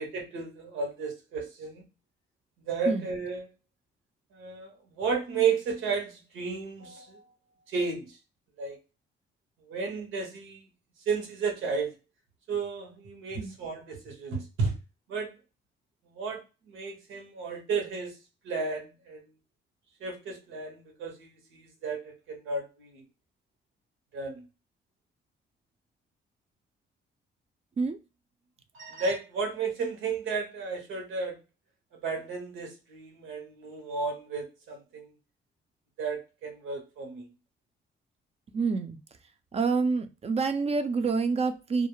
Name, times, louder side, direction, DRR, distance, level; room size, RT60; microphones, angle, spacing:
voice 1, 0.0-1.8 2.7-3.5 4.3-7.2 7.7-8.2 8.6-8.8 9.7-10.6 11.1-11.9 12.5-14.7 15.1-15.3 16.0-18.2 18.4-19.2 20.0-23.0 24.1-24.5 28.7-31.4 32.0-35.1 36.0-37.3, right 4 dB, 90° right, 3 dB, 1.0 m, -33 dB
voice 2, 38.5-39.0 39.5-41.9, right 4 dB, 30° right, 8 dB, 0.4 m, -27 dB
2.3 x 2.0 x 3.0 m, 0.29 s
cardioid pair, 90°, 20 cm